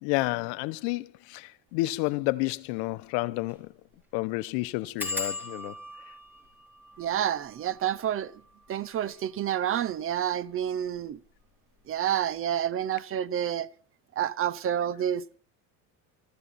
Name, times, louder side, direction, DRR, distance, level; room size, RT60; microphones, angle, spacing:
voice 1, 0.0-3.7 4.1-5.7, left 20 dB, 70° left, 0.9 m, -30 dB
sound 1, 1.8-2.0 2.4-2.5 2.8-2.9 3.4-3.7 3.9-4.0 5.0-10.3 10.9-11.5 11.8-12.1 12.4-12.5, left 2 dB, 5° right, 4.5 m, -41 dB
voice 2, 7.0-8.3 8.7-11.2 11.9-13.7 14.2-15.4, right 10 dB, 35° right, 0.7 m, -29 dB
23.5 x 14.5 x 4.2 m
cardioid pair, 130°, 41 cm